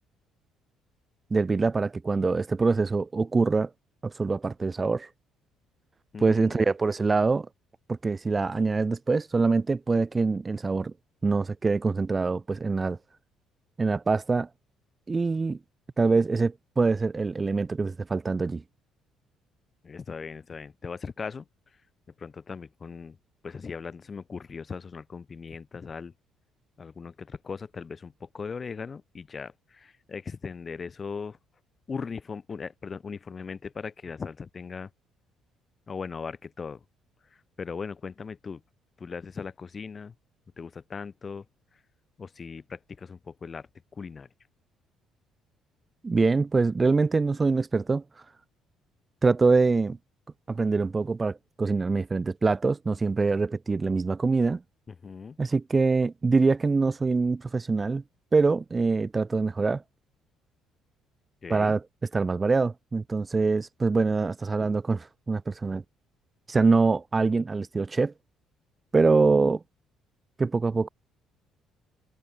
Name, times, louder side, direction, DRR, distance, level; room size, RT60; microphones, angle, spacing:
voice 1, 1.3-3.7 4.0-5.1 6.2-7.5 7.9-10.9 11.2-13.0 13.8-14.5 15.1-15.6 16.0-18.6 46.0-48.0 49.2-50.0 50.5-54.6 55.4-58.0 58.3-59.8 61.5-61.8 62.1-65.8 66.5-68.1 68.9-69.6 70.4-70.9, right 4 dB, 20° right, 1.0 m, -24 dB
voice 2, 6.1-6.7 19.8-21.5 22.2-23.2 23.4-26.1 26.8-31.4 31.9-34.9 35.9-36.8 37.6-38.6 39.0-40.1 40.6-41.5 42.2-44.3 54.9-55.4 61.4-61.8, left 5 dB, 30° left, 3.6 m, -38 dB
cardioid pair, 130°, 0 cm